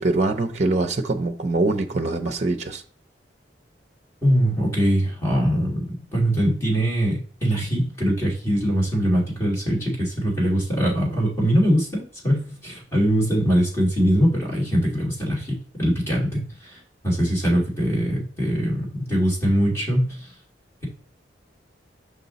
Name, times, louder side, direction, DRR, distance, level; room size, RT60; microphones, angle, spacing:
voice 1, 0.0-2.8, right 2 dB, 40° right, 0.6 m, -23 dB
voice 2, 4.2-20.3, equal, 15° left, 2.4 m, -22 dB
5.7 x 5.2 x 4.0 m
head